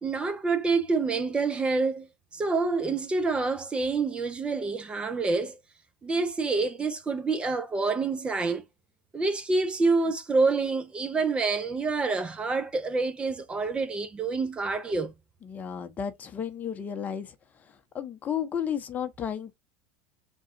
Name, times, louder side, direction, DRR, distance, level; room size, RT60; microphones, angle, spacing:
voice 1, 0.0-2.1 2.3-5.6 6.0-8.6 9.1-15.1, right 3 dB, 20° right, 0.6 m, -27 dB
voice 2, 15.4-17.3 17.9-19.5, left 8 dB, 30° left, 0.8 m, -33 dB
3.7 x 2.3 x 4.2 m
hypercardioid pair, 105°, 6 cm